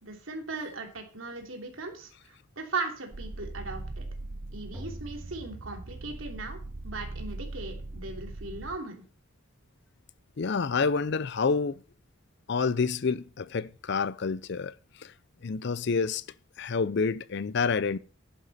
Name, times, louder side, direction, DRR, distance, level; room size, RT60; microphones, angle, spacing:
voice 1, 0.0-4.1 4.5-6.6 6.8-9.0, right 3 dB, 70° right, 3.0 m, -38 dB
sound 1, 3.1-8.8, right 2 dB, 50° right, 0.6 m, -40 dB
sound 2, 4.7-6.7, equal, 10° right, 1.5 m, -47 dB
voice 2, 10.4-11.8 12.5-15.1 15.4-16.2 16.6-18.0, left 5 dB, 55° left, 0.5 m, -28 dB
11.0 x 10.0 x 4.2 m
head